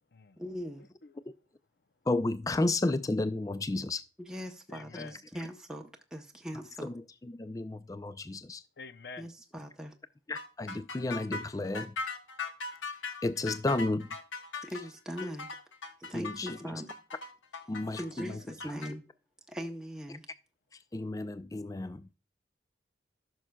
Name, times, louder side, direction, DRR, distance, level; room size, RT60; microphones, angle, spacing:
voice 1, 0.4-0.8 4.2-7.0 9.2-9.9 14.6-15.5 16.0-16.9 18.0-19.0 19.5-20.3, equal, 5° right, 0.7 m, -40 dB
voice 2, 2.1-4.0 6.8-6.9 7.4-8.6 10.3-11.9 13.2-14.1 16.1-16.6 17.7-18.0 20.9-22.0, left 2 dB, 20° left, 0.3 m, -32 dB
voice 3, 4.7-5.2 8.8-9.3 18.3-18.4, left 5 dB, 55° left, 0.6 m, -47 dB
sound 1, 10.4-18.9, left 4 dB, 85° left, 1.3 m, -39 dB
14.0 x 6.3 x 2.2 m
head